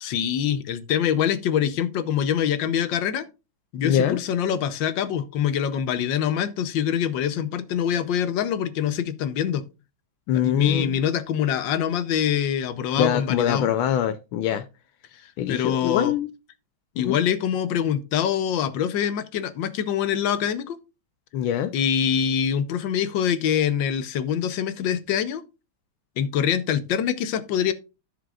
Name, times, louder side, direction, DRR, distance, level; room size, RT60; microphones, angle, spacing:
voice 1, 0.0-3.3 3.7-9.6 10.3-13.7 15.2-16.1 17.0-20.8 21.7-25.4 26.2-27.7, left 9 dB, 70° left, 1.5 m, -24 dB
voice 2, 3.8-4.2 10.3-11.0 12.9-14.6 15.4-16.3 17.0-17.2 21.3-21.7, left 9 dB, 85° left, 1.5 m, -23 dB
12.5 x 6.6 x 2.4 m
omnidirectional pair, 2.2 m